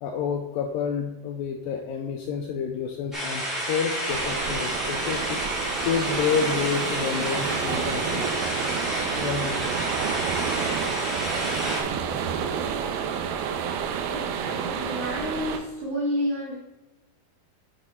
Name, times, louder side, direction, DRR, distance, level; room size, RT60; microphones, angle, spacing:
voice 1, 0.0-5.4 5.8-8.4 9.2-9.8, left 6 dB, 85° left, 4 dB, 2.0 m, -29 dB
sound 1, 3.1-11.8, equal, ahead, 1.4 m, -30 dB
sound 2, 4.1-15.6, right 7 dB, 85° right, 2.4 m, -29 dB
voice 2, 14.1-16.6, equal, 60° right, -6 dB, 2.3 m, -30 dB
8.8 x 4.1 x 4.3 m, 0.97 s
omnidirectional pair, 4.5 m